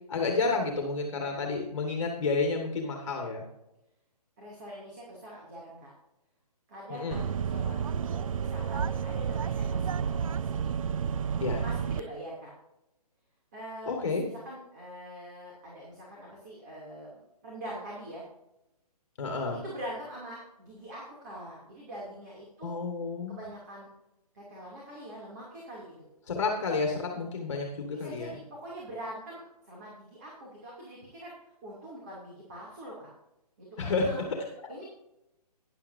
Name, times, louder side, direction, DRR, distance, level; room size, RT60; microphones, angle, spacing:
voice 1, 0.1-3.4 6.9-7.2 11.4-11.6 13.9-14.2 19.2-19.6 22.6-23.4 26.3-28.3 33.8-34.1, left 4 dB, 50° left, 2 dB, 1.7 m, -30 dB
voice 2, 4.4-5.9 6.7-7.2 7.4-10.7 11.6-12.5 13.5-18.2 19.5-22.7 23.3-23.9 24.3-25.9 27.9-33.1 33.6-34.2 34.7-34.8, right 1 dB, 25° right, -5 dB, 2.7 m, -44 dB
sound 1, 7.1-12.0, right 7 dB, 55° right, 0.4 m, -31 dB
12.5 x 10.5 x 2.7 m, 0.90 s
hypercardioid pair, 175°, 20 cm